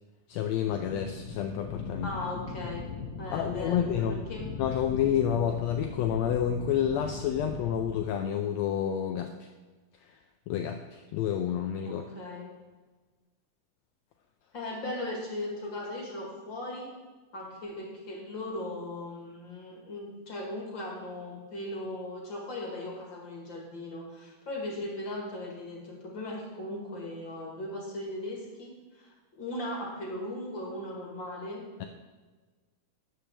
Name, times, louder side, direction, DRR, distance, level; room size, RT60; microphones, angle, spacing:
voice 1, 0.3-2.1 3.3-4.2 4.6-9.3 10.5-12.1 31.8-31.9, left 9 dB, 80° left, 5 dB, 1.6 m, -29 dB
sound 1, 0.7-8.1, left 5 dB, 60° left, 1.3 m, -39 dB
voice 2, 2.0-2.9 3.2-4.5 11.9-12.5 14.5-16.9 17.3-31.6, left 1 dB, 45° left, -2 dB, 2.1 m, -38 dB
13.0 x 8.9 x 3.4 m, 1.3 s
omnidirectional pair, 3.6 m